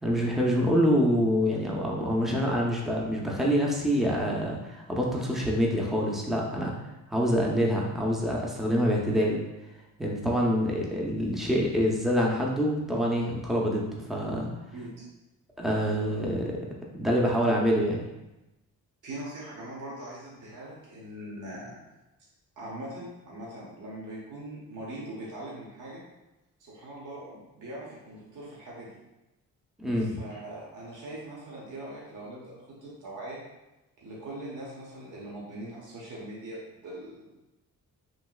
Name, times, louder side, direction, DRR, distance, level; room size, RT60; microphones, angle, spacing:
voice 1, 0.0-6.7 7.1-9.4 10.0-14.5 15.6-16.6 16.9-18.0 29.8-30.1, equal, ahead, -2 dB, 0.6 m, -26 dB
voice 2, 14.7-15.0 19.0-21.8 22.6-26.0 26.6-28.9 30.0-33.4 34.0-37.4, right 1 dB, 55° right, -5 dB, 1.1 m, -41 dB
3.2 x 2.7 x 2.3 m, 0.99 s
supercardioid pair, 55°, 38 cm